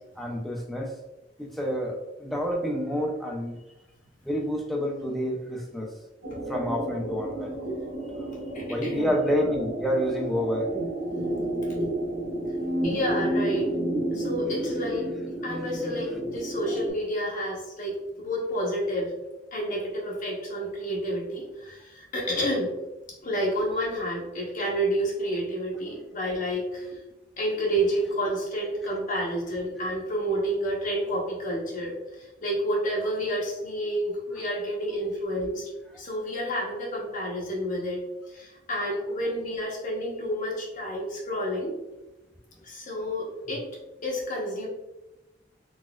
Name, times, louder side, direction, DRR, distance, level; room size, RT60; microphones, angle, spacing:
voice 1, 0.2-0.9 1.4-3.6 4.2-5.9 6.5-7.6 8.7-10.7 15.4-15.8, equal, ahead, -1 dB, 0.4 m, -28 dB
sound 1, 6.2-16.9, right 1 dB, 85° right, 1.4 m, -31 dB
voice 2, 8.5-9.1 12.8-13.7 14.1-15.1 15.4-19.1 19.5-22.7 23.2-27.0 27.4-38.0 38.3-41.8 42.6-43.7 44.0-44.7, equal, 45° left, -3 dB, 0.8 m, -30 dB
4.0 x 2.4 x 2.2 m, 0.96 s
head